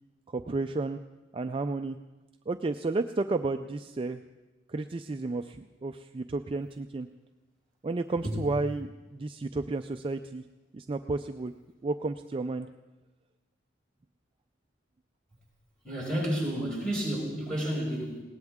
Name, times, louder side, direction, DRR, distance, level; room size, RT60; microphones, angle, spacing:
voice 1, 0.3-1.0 1.3-2.0 2.5-4.2 4.7-7.1 7.8-10.4 10.7-11.5 11.8-12.7, right 3 dB, 30° right, 7 dB, 0.4 m, -32 dB
voice 2, 15.8-18.2, right 1 dB, 5° left, -5 dB, 6.2 m, -31 dB
21.0 x 18.0 x 3.6 m, 1.1 s
head